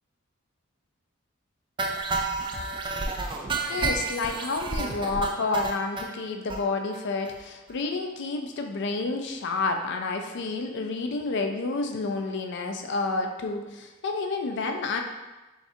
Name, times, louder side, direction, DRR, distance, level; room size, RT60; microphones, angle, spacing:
sound 1, 1.8-6.1 6.5-6.6 6.9-7.0 7.3-7.4 7.7-7.8, right 3 dB, 25° right, 0.3 m, -30 dB
voice 1, 3.7-15.0, left 3 dB, 55° left, 4 dB, 0.4 m, -29 dB
3.4 x 2.4 x 4.3 m, 1.1 s
head